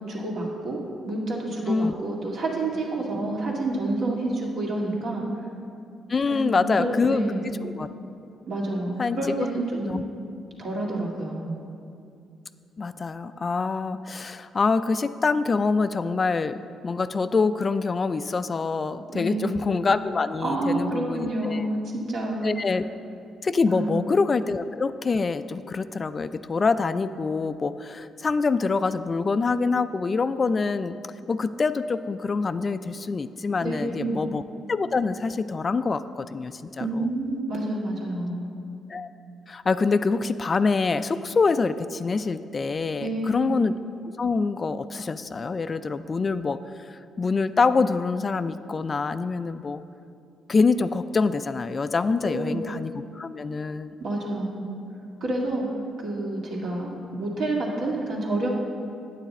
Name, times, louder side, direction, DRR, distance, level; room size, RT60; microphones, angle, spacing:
voice 1, 0.1-0.8 1.1-5.2 6.3-7.4 8.5-10.0 10.6-11.5 19.1-19.6 20.4-22.5 23.7-24.0 33.6-34.2 36.8-38.5 43.0-43.5 52.2-52.6 54.0-54.7 55.2-55.7 56.0-58.5, right 2 dB, 65° right, -2 dB, 2.0 m, -28 dB
voice 2, 6.1-7.2 7.6-7.9 9.0-9.5 9.7-10.0 12.8-16.6 16.8-21.7 22.4-22.8 23.4-31.0 31.3-34.4 34.7-37.1 38.9-39.1 39.5-43.7 44.2-49.8 50.5-54.0, left 4 dB, 35° left, 12 dB, 0.3 m, -25 dB
9.1 x 8.9 x 4.2 m, 2.5 s
cardioid pair, 90°, 0 cm